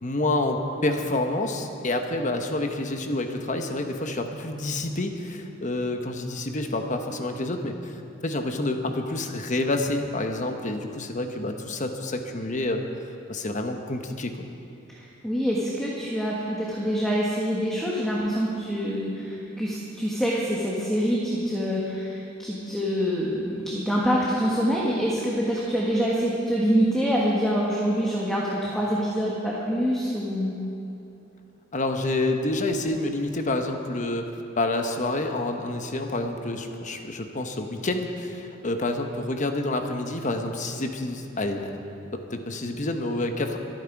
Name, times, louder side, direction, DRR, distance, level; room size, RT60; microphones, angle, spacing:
voice 1, 0.0-7.9 8.2-12.8 13.3-14.5 31.7-41.9 42.3-43.6, left 2 dB, 40° left, 5 dB, 1.0 m, -28 dB
voice 2, 14.9-30.5, equal, ahead, -5 dB, 1.5 m, -25 dB
24.0 x 9.2 x 4.7 m, 2.9 s
head